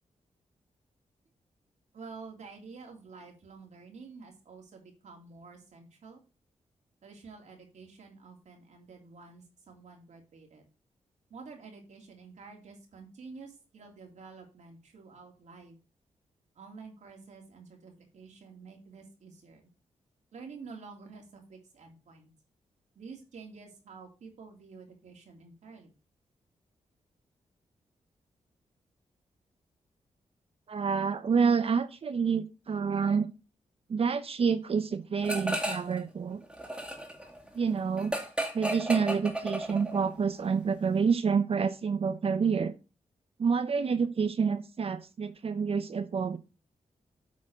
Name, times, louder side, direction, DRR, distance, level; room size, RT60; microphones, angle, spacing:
voice 1, 1.9-6.2 7.0-10.6 11.3-15.8 16.5-19.7 20.3-22.3 22.9-25.9, right 4 dB, 75° right, 2 dB, 3.0 m, -49 dB
voice 2, 30.7-33.3 33.9-36.4 37.5-38.1 38.5-42.7 43.4-46.4, right 6 dB, 50° right, 11 dB, 0.7 m, -28 dB
sound 1, 35.2-36.0 36.3-40.1, right 1 dB, 5° right, 2.2 m, -34 dB
8.4 x 4.2 x 6.2 m, 0.31 s
cardioid pair, 85°, 12 cm